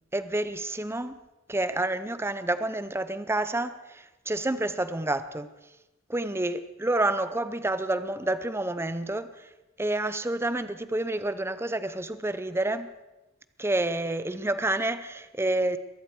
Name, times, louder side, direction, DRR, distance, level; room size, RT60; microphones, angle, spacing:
voice 1, 0.1-1.2 1.5-5.5 6.1-9.5 9.8-12.9 13.6-15.8, right 2 dB, 15° right, 12 dB, 0.7 m, -29 dB
22.0 x 13.0 x 4.8 m, 1.0 s
head